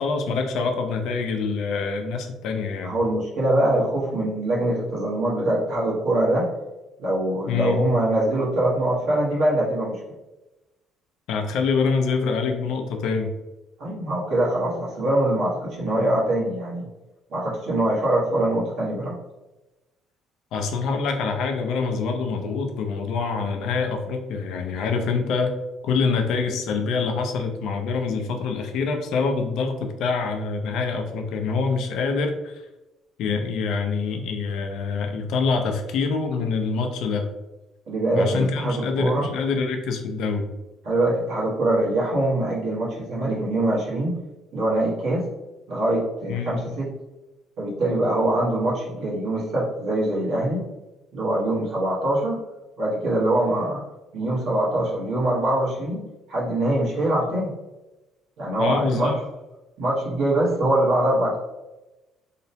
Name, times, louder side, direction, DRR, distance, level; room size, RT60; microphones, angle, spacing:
voice 1, 0.0-3.0 7.5-7.8 11.3-13.3 20.5-25.6 25.8-32.6 33.2-37.3 38.1-40.5 46.3-46.6 58.6-59.2, left 4 dB, 70° left, 4 dB, 0.4 m, -25 dB
voice 2, 2.8-6.5 7.0-10.0 13.8-16.8 17.3-19.2 37.9-39.3 40.8-44.2 44.5-45.2 45.7-46.9 47.6-50.7 51.1-52.4 52.8-53.8 54.1-56.0 56.3-57.5 58.4-59.2 59.8-61.4, right 1 dB, 65° right, -6 dB, 1.0 m, -23 dB
2.8 x 2.1 x 2.7 m, 1.0 s
cardioid pair, 130°, 0 cm